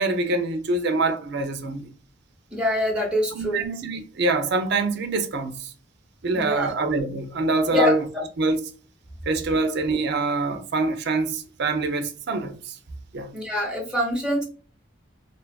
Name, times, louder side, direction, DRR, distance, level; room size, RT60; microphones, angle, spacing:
voice 1, 0.0-1.9 3.3-5.7 6.2-8.0 8.4-8.6 9.3-12.8 13.1-13.3, right 3 dB, 55° right, 0.4 m, -25 dB
voice 2, 2.5-3.6 6.3-6.7 7.7-8.2 13.3-14.4, left 1 dB, 5° right, 0.7 m, -24 dB
2.6 x 2.3 x 2.2 m
head